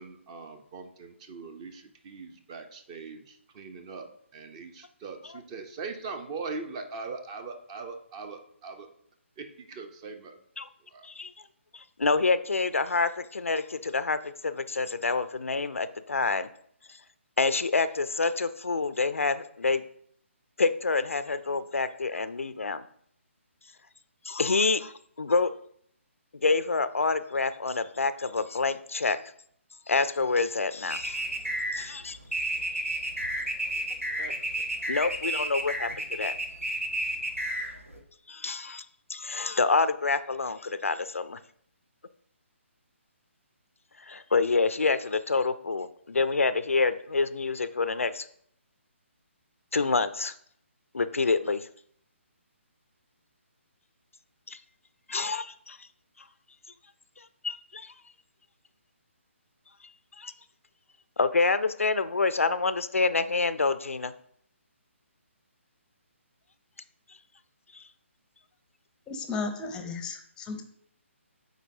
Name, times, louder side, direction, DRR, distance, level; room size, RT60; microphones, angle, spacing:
voice 1, 0.0-8.9 9.4-10.4 10.9-11.1 34.2-34.4, right 4 dB, 25° right, 8 dB, 0.6 m, -41 dB
voice 2, 11.7-16.5 16.9-17.0 17.4-19.8 20.6-22.8 24.2-25.5 26.4-29.2 29.9-31.2 31.7-32.2 34.9-36.3 38.3-41.4 44.0-48.3 49.7-50.3 50.9-51.7 54.5-54.6 55.1-55.9 56.2-56.3 57.2-57.9 60.2-60.3 61.2-64.1 67.7-67.8, left 4 dB, 80° left, 13 dB, 0.4 m, -27 dB
sound 1, 30.9-38.0, right 1 dB, 90° right, 1.1 m, -31 dB
voice 3, 69.1-70.6, left 4 dB, 10° left, 6 dB, 0.6 m, -34 dB
9.0 x 4.0 x 2.7 m, 0.66 s
figure-of-eight pair, 140°, 7 cm